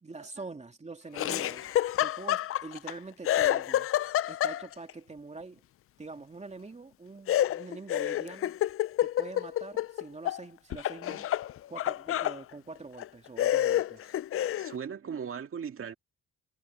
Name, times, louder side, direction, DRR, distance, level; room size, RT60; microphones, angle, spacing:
voice 1, 0.0-3.9 4.3-5.6 6.0-8.5 9.0-11.3 11.7-14.1, right 3 dB, 20° right, 2.7 m, -45 dB
Meow, 1.0-1.9, left 13 dB, 85° left, 5.2 m, -60 dB
Laughter, 1.1-2.9 3.2-4.9 7.3-10.4 10.7-12.4 13.0-13.1 13.4-14.7, left 12 dB, 50° left, 0.4 m, -28 dB
voice 2, 14.6-15.9, right 7 dB, 45° right, 2.1 m, -38 dB
cardioid pair, 90°, 30 cm